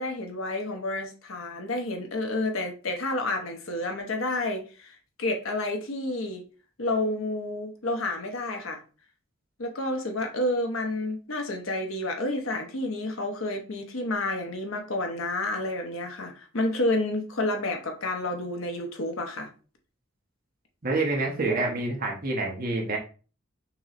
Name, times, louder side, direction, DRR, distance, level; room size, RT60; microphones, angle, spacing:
voice 1, 0.0-6.4 6.8-8.8 9.6-19.5, left 2 dB, 75° left, 0.9 m, -30 dB
voice 2, 20.8-23.0, right 2 dB, 45° right, 1.1 m, -27 dB
5.9 x 3.1 x 2.5 m
head